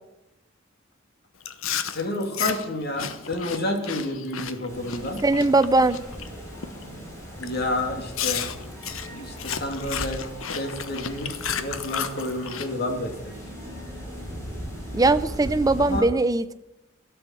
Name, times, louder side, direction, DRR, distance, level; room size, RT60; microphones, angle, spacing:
Chewing mastication, 1.4-6.3 6.6-6.9 7.4-7.6 8.1-12.7, left 8 dB, 85° left, 0.9 m, -33 dB
voice 1, 1.9-5.2 7.4-8.4 9.1-10.2 10.6-11.3 11.6-13.4 15.8-16.1, left 1 dB, 50° left, 3 dB, 2.4 m, -30 dB
sound 1, 4.7-16.0, equal, 15° left, 4.3 m, -38 dB
voice 2, 5.2-6.0 14.9-16.5, right 2 dB, 20° right, 12 dB, 0.6 m, -20 dB
12.5 x 7.1 x 8.9 m, 0.92 s
head